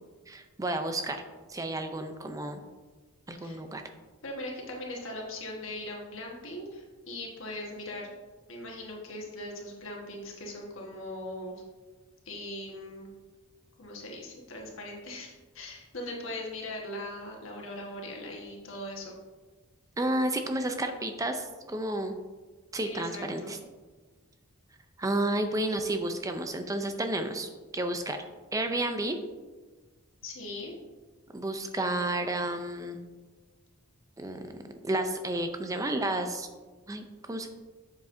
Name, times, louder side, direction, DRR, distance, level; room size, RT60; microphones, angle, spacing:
voice 1, 0.3-1.2 1.5-2.6 3.3-3.8 20.0-22.1 22.7-23.6 25.0-28.2 28.5-29.2 31.3-33.0 34.2-34.5 34.8-36.5 36.9-37.5, right 1 dB, 15° right, 6 dB, 0.4 m, -31 dB
voice 2, 4.2-8.1 8.5-11.6 12.2-13.1 13.8-19.2 22.8-23.5 30.2-30.7, left 1 dB, 65° left, -2 dB, 1.3 m, -40 dB
7.7 x 7.2 x 2.6 m, 1.3 s
head